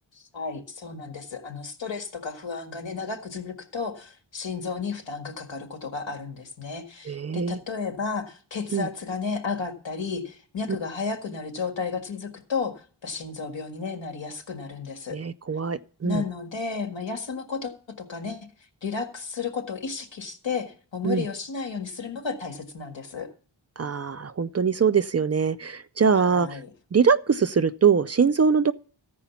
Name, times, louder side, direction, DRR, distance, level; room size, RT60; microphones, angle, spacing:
voice 1, 0.1-15.2 16.0-18.5 18.8-23.3 26.2-26.7, left 5 dB, 85° left, 1.8 m, -33 dB
voice 2, 7.1-7.6 8.7-8.9 15.1-16.2 21.0-21.2 23.8-26.6 26.9-28.7, right 6 dB, 35° right, 0.4 m, -22 dB
15.0 x 5.0 x 7.0 m
wide cardioid pair, 100°, 44 cm